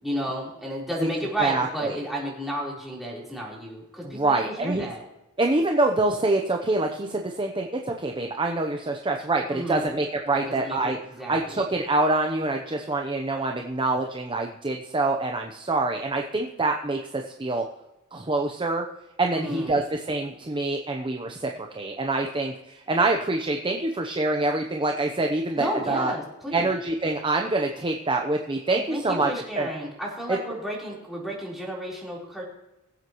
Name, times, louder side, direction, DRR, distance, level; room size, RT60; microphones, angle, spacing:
voice 1, 0.0-5.0 9.5-9.9 10.3-10.9 11.2-11.6 19.3-19.8 25.6-26.7 28.7-32.4, right 1 dB, ahead, -5 dB, 4.0 m, -32 dB
voice 2, 1.4-2.0 4.0-4.9 5.4-11.0 11.3-17.6 18.1-18.8 19.2-26.1 26.5-29.3 29.6-29.7, right 2 dB, 20° right, 3 dB, 0.8 m, -26 dB
22.0 x 7.9 x 3.1 m, 0.94 s
head